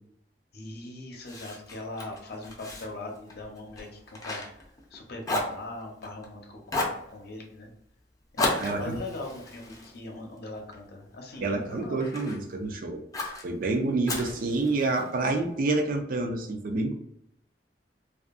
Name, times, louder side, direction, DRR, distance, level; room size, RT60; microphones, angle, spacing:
voice 1, 0.5-4.4 4.9-7.7 8.3-12.0, left 2 dB, 65° left, 1 dB, 0.7 m, -40 dB
Fire, 1.2-5.0 5.2-6.3 6.7-7.1 8.4-10.8 11.3-12.4 13.1-13.4 14.1-15.1, left 2 dB, 20° left, 0.5 m, -34 dB
voice 2, 8.6-9.0 11.4-13.0 13.4-16.9, right 2 dB, 50° right, 4 dB, 0.4 m, -28 dB
2.6 x 2.4 x 2.4 m, 0.76 s
head